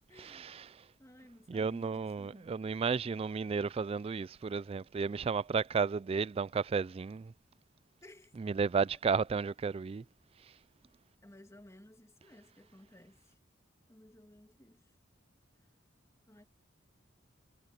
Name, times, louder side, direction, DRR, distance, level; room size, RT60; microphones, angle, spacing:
voice 1, 0.1-0.6 1.0-2.6 8.0-8.3 11.2-13.4 13.9-14.9 16.3-16.4, left 1 dB, 15° left, 2.4 m, -57 dB
voice 2, 1.5-7.3 8.4-10.0, right 5 dB, 30° right, 0.3 m, -33 dB
head